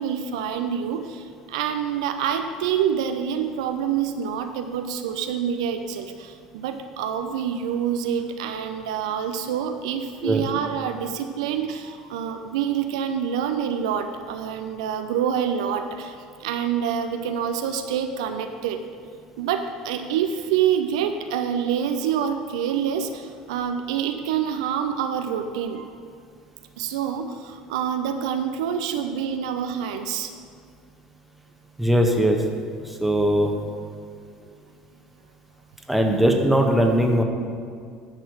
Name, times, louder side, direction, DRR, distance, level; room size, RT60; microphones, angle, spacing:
voice 1, 0.0-18.8 19.4-25.9 26.8-30.3, right 8 dB, 65° right, 7 dB, 0.5 m, -27 dB
voice 2, 31.8-32.4 32.8-33.5 35.9-37.2, equal, 5° right, 2 dB, 1.3 m, -20 dB
10.5 x 6.2 x 6.2 m, 2.2 s
figure-of-eight pair, 65°, 4 cm